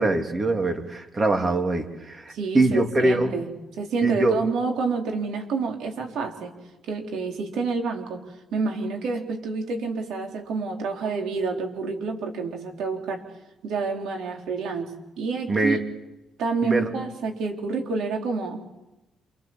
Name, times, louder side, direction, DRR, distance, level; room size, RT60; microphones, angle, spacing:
voice 1, 0.0-3.3 4.0-4.4 15.5-15.8 16.6-16.9, right 2 dB, 30° right, 5 dB, 3.1 m, -23 dB
voice 2, 2.3-6.5 6.9-8.2 8.5-13.2 13.6-15.8 16.4-18.6, right 4 dB, 80° right, 2 dB, 4.1 m, -28 dB
27.5 x 25.0 x 7.4 m, 0.99 s
cardioid pair, 90°, 0 cm